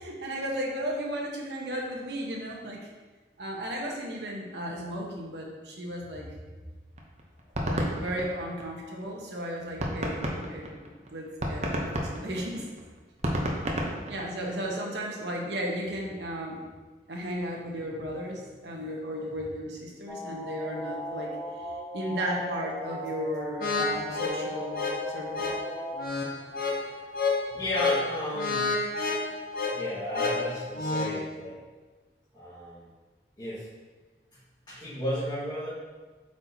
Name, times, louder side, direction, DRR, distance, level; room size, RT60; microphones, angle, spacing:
voice 1, 0.0-2.9 3.4-6.4 7.6-12.7 14.1-16.6 17.1-21.7 21.9-25.5, equal, 80° right, -1 dB, 1.0 m, -35 dB
sound 1, 7.0-9.0 9.4-9.5 9.8-14.7, equal, 40° right, 0.8 m, -31 dB
sound 2, 20.1-26.1, equal, 10° left, 0.5 m, -38 dB
sound 3, 23.6-31.2, left 3 dB, 50° left, 0.8 m, -30 dB
voice 2, 26.6-27.0 27.5-29.1 29.7-31.6 32.3-32.9 33.4-33.7 34.7-35.7, equal, 25° left, -12 dB, 1.7 m, -34 dB
7.7 x 4.4 x 2.8 m, 1.3 s
head